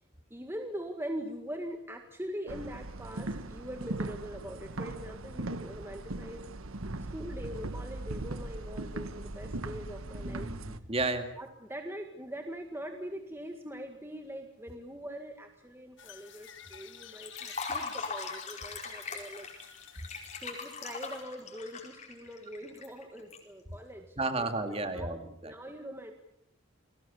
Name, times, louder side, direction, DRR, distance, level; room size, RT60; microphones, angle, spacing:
voice 1, 0.3-6.4 7.1-10.5 11.4-19.5 20.4-24.5 24.8-26.1, equal, 10° right, 4 dB, 1.8 m, -42 dB
sound 1, 2.5-10.8, right 2 dB, 85° right, 1.3 m, -39 dB
voice 2, 10.2-11.3 24.2-25.5, right 2 dB, 30° right, 7 dB, 2.3 m, -33 dB
sound 2, 16.0-21.2, left 8 dB, 60° left, 2.0 m, -51 dB
Liquid, 17.3-23.4, left 4 dB, 35° left, 4.8 m, -40 dB
29.5 x 21.0 x 7.1 m, 0.74 s
head